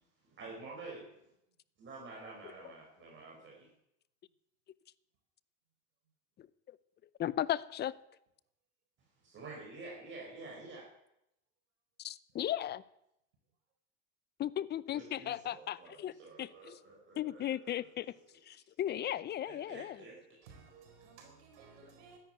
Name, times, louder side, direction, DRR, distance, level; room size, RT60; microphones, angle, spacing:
voice 1, 0.3-1.1 1.8-3.7 9.2-10.9 14.9-18.2 19.5-20.2, right 3 dB, 35° right, -1 dB, 5.2 m, -49 dB
voice 2, 7.2-7.9 12.0-12.8 14.4-16.1 16.4-16.8 17.2-18.1 18.5-20.0, left 11 dB, 30° left, 19 dB, 0.7 m, -36 dB
voice 3, 20.4-22.2, right 5 dB, 85° right, 3 dB, 4.6 m, -56 dB
13.0 x 10.5 x 9.4 m, 0.82 s
supercardioid pair, 120°, 33 cm